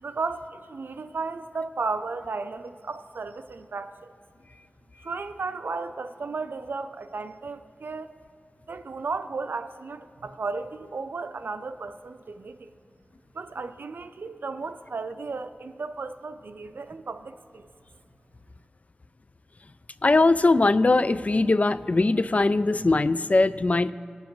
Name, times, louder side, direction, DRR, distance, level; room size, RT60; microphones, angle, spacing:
voice 1, 0.0-4.1 5.0-8.1 8.7-12.7 13.3-17.7, right 4 dB, 90° right, 10 dB, 0.4 m, -34 dB
voice 2, 20.0-23.9, left 2 dB, 45° left, 15 dB, 0.3 m, -21 dB
19.0 x 7.2 x 3.1 m, 2.2 s
wide cardioid pair, 60°, 3 cm